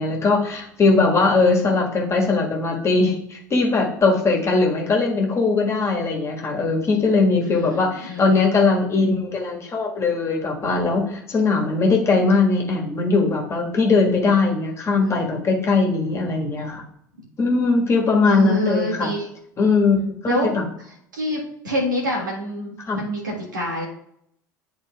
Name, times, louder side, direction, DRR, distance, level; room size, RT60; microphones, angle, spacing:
voice 1, 0.0-16.8 17.4-19.1 19.6-20.6 22.9-23.0, left 3 dB, 25° left, -1 dB, 1.6 m, -20 dB
voice 2, 7.4-8.4 15.0-15.4 17.2-17.3 18.2-19.3 20.3-20.5 21.1-23.8, equal, 80° right, -2 dB, 1.6 m, -27 dB
10.5 x 3.9 x 2.4 m, 0.72 s
figure-of-eight pair, 70°, 10 cm